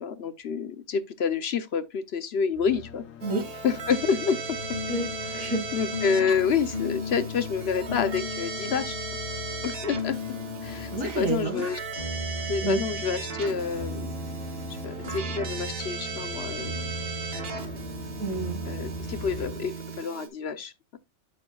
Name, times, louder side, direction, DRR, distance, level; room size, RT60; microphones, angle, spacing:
voice 1, 0.0-3.0 3.6-4.6 5.3-9.0 9.6-10.2 10.6-11.8 12.5-14.1 14.8-17.0 17.3-17.8 18.7-21.0, left 6 dB, 60° left, 0.9 m, -28 dB
sound 1, 2.5-19.5, left 7 dB, 75° left, 1.2 m, -43 dB
Keyboard (musical), 3.2-20.3, right 4 dB, 45° right, 1.5 m, -37 dB
voice 2, 3.2-3.7 4.9-5.1 5.4-5.6 10.9-11.7 12.6-12.8 18.2-18.6, right 2 dB, 85° right, 2.1 m, -29 dB
sound 2, 4.4-11.1 11.9-20.0, left 1 dB, 35° left, 2.4 m, -37 dB
8.5 x 8.1 x 2.3 m
omnidirectional pair, 1.4 m